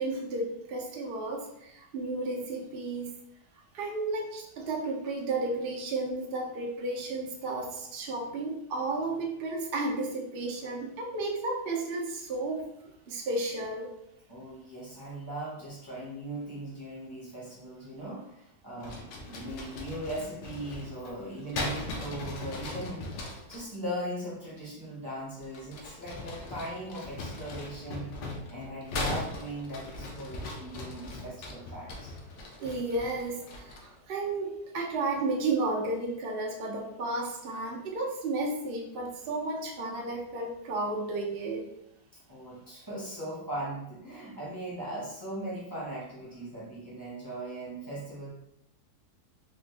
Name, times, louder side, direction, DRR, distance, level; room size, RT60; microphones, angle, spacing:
voice 1, 0.0-3.2 3.7-13.9 32.6-41.6, right 2 dB, 85° right, -1 dB, 0.5 m, -33 dB
voice 2, 14.3-28.2 28.5-32.1 42.3-48.3, right 1 dB, 20° right, -7 dB, 0.6 m, -39 dB
sound 1, 18.8-23.6 25.4-34.0, left 2 dB, 75° left, 1.2 m, -39 dB
3.7 x 2.0 x 3.2 m, 0.78 s
omnidirectional pair, 1.8 m